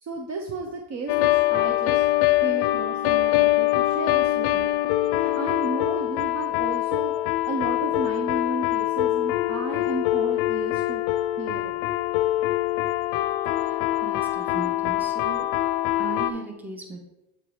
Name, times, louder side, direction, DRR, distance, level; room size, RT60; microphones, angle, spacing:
voice 1, 0.0-2.1 2.4-4.7 5.2-7.1 7.5-11.0 11.4-11.8, right 3 dB, 35° right, 3 dB, 0.6 m, -33 dB
sound 1, 1.1-16.3, left 15 dB, 75° left, 0.6 m, -24 dB
voice 2, 14.0-15.5 16.0-17.0, right 4 dB, 5° right, 2 dB, 0.8 m, -37 dB
8.0 x 2.8 x 4.7 m, 0.95 s
supercardioid pair, 115°, 48 cm